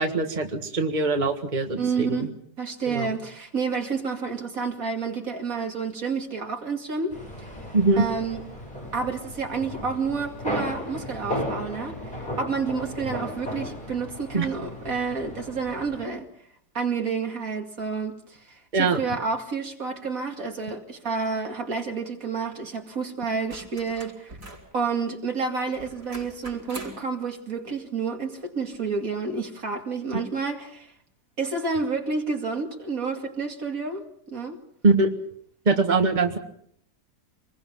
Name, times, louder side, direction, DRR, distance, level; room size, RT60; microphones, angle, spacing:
voice 1, 0.0-2.3 2.9-3.1 7.7-8.1 14.3-14.5 18.7-19.0 30.1-30.2 34.8-35.2 35.7-36.4, right 3 dB, 30° right, 1.9 m, -22 dB
voice 2, 1.8-2.3 2.6-7.5 8.0-8.4 8.9-16.3 16.7-24.3 24.7-30.9 31.4-34.6, right 4 dB, 60° right, 2.8 m, -29 dB
sound 1, 7.1-16.1, left 1 dB, 30° left, 8.1 m, -35 dB
sound 2, 23.5-24.7 25.7-27.1 28.7-28.8, right 2 dB, 80° right, 5.4 m, -42 dB
26.0 x 21.5 x 5.7 m
omnidirectional pair, 1.6 m